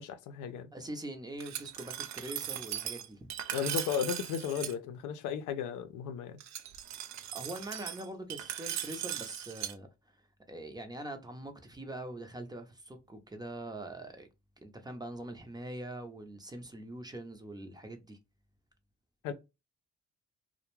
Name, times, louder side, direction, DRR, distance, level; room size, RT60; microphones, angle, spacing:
voice 1, 0.0-0.7 3.5-6.4 19.2-19.3, left 8 dB, 85° left, 0.5 m, -35 dB
voice 2, 0.7-3.3 7.3-9.9 10.5-14.3 14.6-18.2, right 1 dB, 15° right, 0.6 m, -43 dB
Glass, 1.4-4.7 6.4-9.7, right 11 dB, 65° right, 0.4 m, -39 dB
2.2 x 2.1 x 3.0 m
cardioid pair, 90°, 30 cm